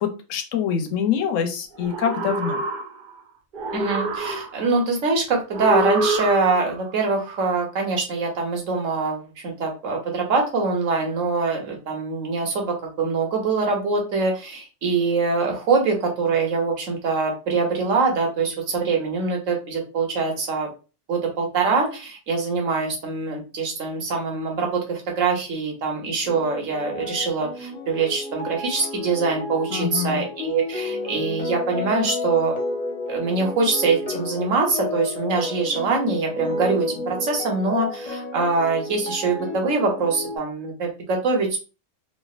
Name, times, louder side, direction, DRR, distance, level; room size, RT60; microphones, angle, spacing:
voice 1, 0.0-2.6 29.7-30.3, left 8 dB, 85° left, 6 dB, 1.0 m, -25 dB
sound 1, 1.8-3.2 3.5-4.8 5.5-6.8, right 2 dB, 55° right, 0.6 m, -26 dB
voice 2, 3.7-20.7 21.1-32.6 33.1-41.6, right 4 dB, 85° right, 1 dB, 1.3 m, -24 dB
sound 2, 26.2-40.4, left 2 dB, 35° left, 0.8 m, -31 dB
3.2 x 2.4 x 2.4 m, 0.33 s
omnidirectional pair, 1.3 m